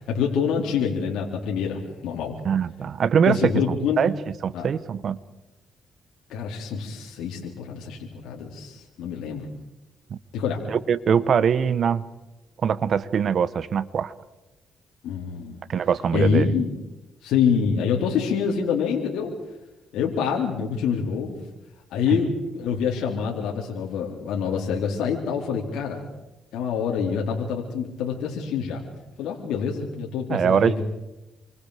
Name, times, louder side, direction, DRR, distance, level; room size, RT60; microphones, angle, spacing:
voice 1, 0.0-2.4 3.2-4.1 4.5-4.7 6.3-9.4 10.3-10.6 15.0-15.6 16.1-16.8 17.2-19.3 19.9-21.4 21.9-26.0 26.5-28.8 29.2-30.8, left 6 dB, 85° left, -1 dB, 3.9 m, -26 dB
voice 2, 2.4-4.1 4.4-5.2 10.7-12.0 12.6-14.1 15.7-16.5 30.3-30.8, right 7 dB, 55° right, 16 dB, 1.2 m, -22 dB
28.5 x 25.0 x 5.1 m, 1.0 s
cardioid pair, 90°, 0 cm